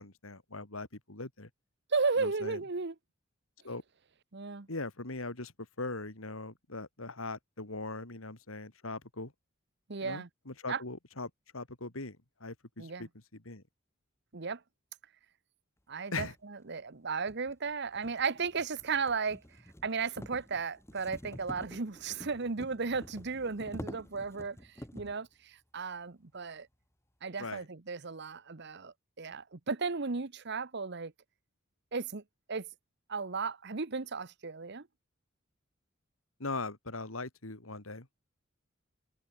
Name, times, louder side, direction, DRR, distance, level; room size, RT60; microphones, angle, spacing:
voice 1, 0.0-1.5 2.2-2.6 3.6-3.8 4.7-5.5 5.8-9.3 10.0-13.6 16.1-16.3 27.4-27.6 36.4-38.1, left 3 dB, 85° left, 3.1 m, -40 dB
voice 2, 1.9-2.9 4.3-4.7 9.9-10.3 10.7-10.8 12.8-13.1 14.3-14.6 15.9-19.4 19.8-24.6 24.9-26.7 27.2-31.1 31.9-32.2 32.5-32.7 33.1-34.9, right 4 dB, 55° right, 1.0 m, -35 dB
sound 1, 16.4-16.5 17.2-25.2, equal, 15° left, 4.1 m, -48 dB
head